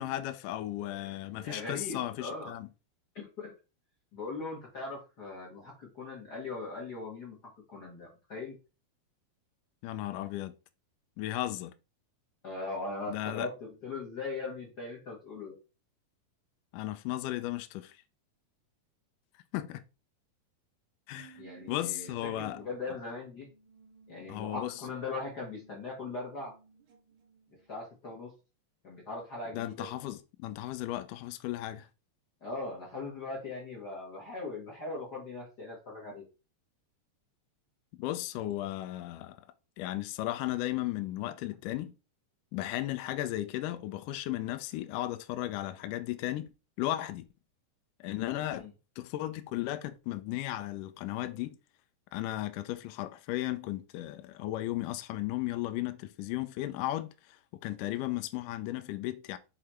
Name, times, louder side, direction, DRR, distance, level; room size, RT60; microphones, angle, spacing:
voice 1, 0.0-2.7 9.8-10.6 11.2-11.7 13.1-13.5 16.7-18.0 19.5-19.8 21.1-21.4 21.7-22.6 24.3-24.8 29.5-31.9 38.0-39.5 39.8-41.9 42.5-46.5 46.8-47.2 48.0-48.7 49.0-51.6 52.1-59.4, left 15 dB, 80° left, 1.9 m, -35 dB
voice 2, 1.0-2.5 3.1-3.5 4.1-7.4 7.7-8.5 12.4-15.6 21.4-23.5 24.1-26.5 27.7-28.3 28.8-29.9 32.4-36.2 48.5-48.7, left 3 dB, 45° left, 1.3 m, -40 dB
sound 1, 21.2-27.8, right 7 dB, 60° right, 1.3 m, -57 dB
6.6 x 3.6 x 4.4 m
omnidirectional pair, 4.3 m